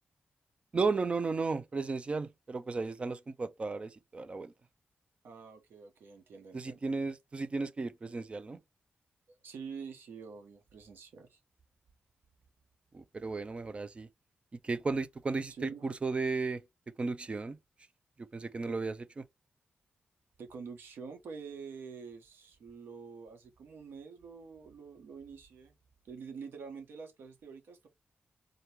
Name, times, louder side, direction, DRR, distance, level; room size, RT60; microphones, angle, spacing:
voice 1, 0.7-4.5 6.5-8.6 12.9-14.1 14.6-16.6 17.0-17.6 18.2-19.2, right 4 dB, 30° right, 0.4 m, -34 dB
voice 2, 5.2-6.8 9.4-11.4 15.5-15.9 18.7-18.8 20.4-25.7 26.0-27.9, right 5 dB, 90° right, 1.2 m, -47 dB
3.8 x 2.9 x 3.4 m
wide cardioid pair, 115°, 4 cm